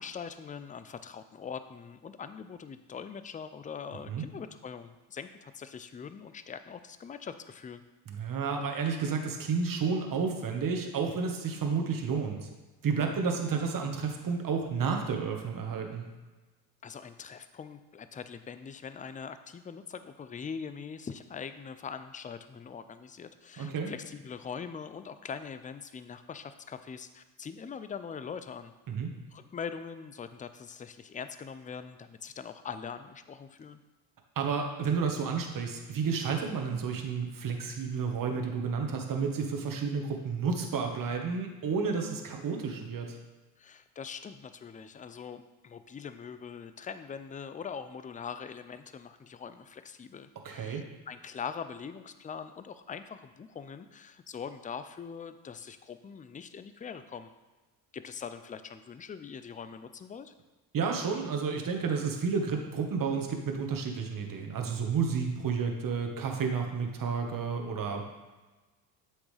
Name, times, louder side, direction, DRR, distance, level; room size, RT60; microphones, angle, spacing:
voice 1, 0.0-7.8 16.8-28.7 29.3-33.8 43.6-57.3 57.9-60.3, left 6 dB, 15° left, 11 dB, 0.4 m, -42 dB
voice 2, 8.1-12.5 12.8-16.0 23.6-23.9 28.9-29.1 34.3-43.2 50.4-50.8 60.7-68.1, right 5 dB, 45° right, 2 dB, 1.4 m, -31 dB
7.9 x 6.3 x 3.4 m, 1.2 s
supercardioid pair, 75°, 47 cm